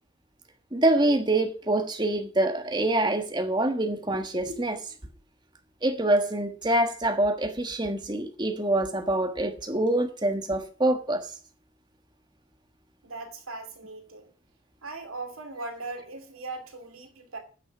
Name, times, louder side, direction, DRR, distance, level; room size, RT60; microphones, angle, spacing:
voice 1, 0.7-4.8 5.8-11.3, right 1 dB, 20° right, 1.4 m, -25 dB
voice 2, 13.0-14.3 14.8-17.4, right 3 dB, 90° right, 2.6 m, -39 dB
9.9 x 6.0 x 6.0 m
head